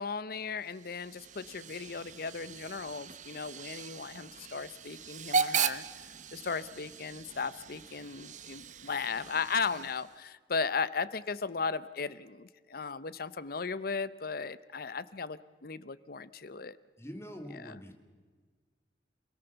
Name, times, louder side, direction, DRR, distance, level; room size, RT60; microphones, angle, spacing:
voice 1, 0.0-5.8 6.3-16.8 17.6-17.8, left 5 dB, 55° left, 16 dB, 0.8 m, -36 dB
Hiss / Train / Alarm, 0.6-10.3, right 5 dB, 45° right, 0.8 m, -38 dB
voice 2, 17.0-17.9, equal, 15° left, 5 dB, 2.6 m, -44 dB
28.0 x 17.5 x 7.0 m, 1.5 s
head